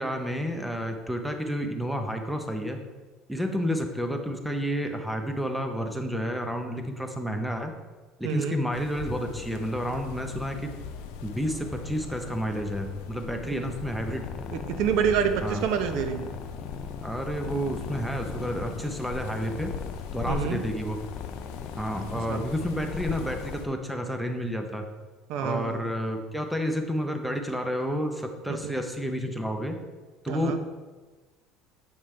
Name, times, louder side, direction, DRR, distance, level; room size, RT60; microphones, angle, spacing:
voice 1, 0.0-2.8 3.3-7.7 8.2-10.7 11.2-14.3 15.4-15.7 17.0-19.7 20.1-21.0 21.8-24.8 25.4-29.8 30.2-30.7, equal, ahead, 5 dB, 0.7 m, -30 dB
voice 2, 8.2-8.6 14.5-16.3 20.3-20.6 22.3-22.5 25.3-25.9 28.5-28.8 30.3-30.6, right 7 dB, 70° right, 8 dB, 0.6 m, -28 dB
sound 1, 8.7-23.7, left 6 dB, 85° left, 0.6 m, -40 dB
sound 2, 13.6-23.6, left 7 dB, 40° left, 0.4 m, -40 dB
7.4 x 5.2 x 3.2 m, 1.3 s
cardioid pair, 130°, 0 cm